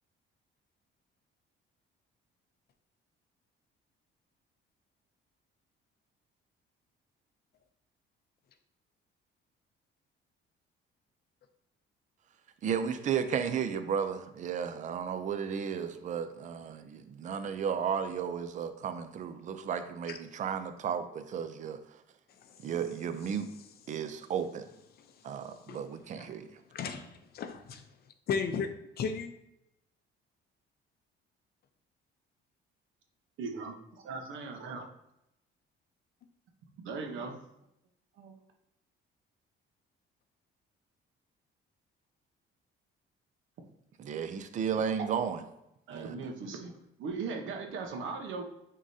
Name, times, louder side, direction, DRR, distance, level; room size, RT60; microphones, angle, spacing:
voice 1, 12.6-21.8 22.6-23.5 23.9-24.7 25.2-26.4 44.0-45.4 45.9-46.2, right 7 dB, 35° right, 9 dB, 0.5 m, -33 dB
voice 2, 22.3-22.7 23.2-23.3 23.9-24.0 24.9-26.4 26.7-27.9 28.3-28.7 29.0-29.3, left 6 dB, 45° left, 8 dB, 0.6 m, -37 dB
voice 3, 33.4-34.8 36.8-37.4 38.2-38.4 45.9-46.7 47.0-48.4, right 4 dB, 70° right, 3 dB, 1.0 m, -38 dB
9.4 x 3.8 x 2.7 m, 0.84 s
cardioid pair, 175°, 21 cm